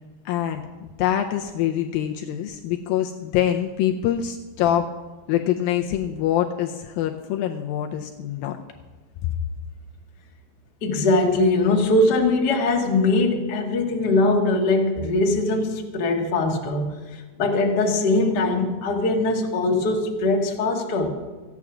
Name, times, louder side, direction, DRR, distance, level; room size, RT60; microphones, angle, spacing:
voice 1, 0.3-4.9 5.3-8.6 9.2-9.3, left 11 dB, 80° left, 3 dB, 2.2 m, -25 dB
voice 2, 10.8-21.1, left 2 dB, 50° left, 0 dB, 1.3 m, -21 dB
14.5 x 9.6 x 6.0 m, 1.3 s
omnidirectional pair, 4.6 m